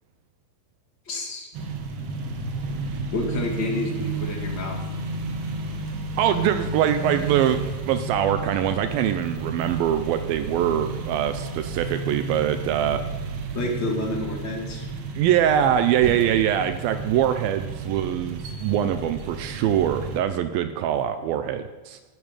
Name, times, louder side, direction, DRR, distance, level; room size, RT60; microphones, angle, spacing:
voice 1, 1.1-1.5 3.1-4.8 13.5-14.9, left 2 dB, 35° left, 0 dB, 2.4 m, -29 dB
sound 1, 1.5-20.2, right 3 dB, 60° right, 1.7 m, -32 dB
voice 2, 6.2-7.6 7.9-13.0 15.2-22.0, right 10 dB, 80° right, 9 dB, 2.3 m, -23 dB
10.5 x 8.9 x 9.0 m, 1.2 s
omnidirectional pair, 4.4 m